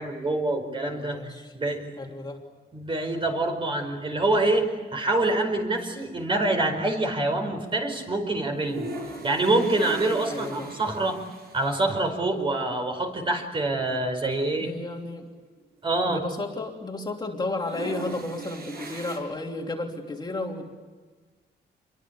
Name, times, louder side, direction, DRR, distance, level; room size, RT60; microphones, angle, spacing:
voice 1, 0.0-1.9 2.7-8.9 9.2-11.2 11.5-14.7 15.8-16.2, right 2 dB, 30° right, 5 dB, 4.8 m, -26 dB
voice 2, 0.9-1.5 2.0-2.4 10.3-10.7 14.6-15.3 16.1-20.7, left 2 dB, 25° left, 1 dB, 3.0 m, -33 dB
sound 1, 8.5-12.0 12.4-12.5 12.7-12.8 13.7-13.9 14.4-14.5 14.6-16.5 16.8-17.1 17.5-19.2, right 2 dB, 60° right, 7.0 m, -39 dB
27.5 x 23.0 x 8.6 m, 1.3 s
wide cardioid pair, 145°, 18 cm